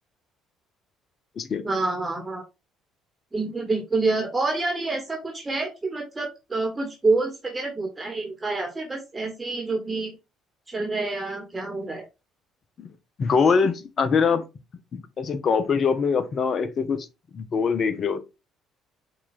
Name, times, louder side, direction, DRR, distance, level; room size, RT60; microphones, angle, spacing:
voice 1, 1.6-2.4 3.3-10.1 10.7-12.1, right 3 dB, 20° right, 1.0 m, -27 dB
voice 2, 13.2-14.4 14.9-17.1 17.3-18.2, left 5 dB, 45° left, 0.6 m, -23 dB
5.8 x 2.3 x 2.5 m
hypercardioid pair, 55°, 0 cm